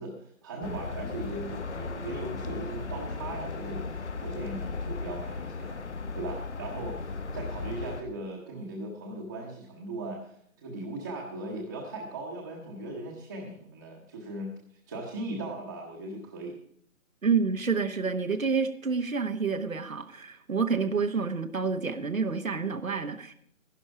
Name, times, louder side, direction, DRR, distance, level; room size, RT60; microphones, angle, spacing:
voice 1, 0.0-5.8 6.1-14.5 14.9-16.6, right 2 dB, 15° right, -2 dB, 0.9 m, -38 dB
sound 1, 0.6-8.0, left 4 dB, 55° left, 1.1 m, -36 dB
voice 2, 17.2-23.3, right 5 dB, 75° right, 8 dB, 1.2 m, -28 dB
12.0 x 10.5 x 4.7 m, 0.65 s
figure-of-eight pair, 150°, 41 cm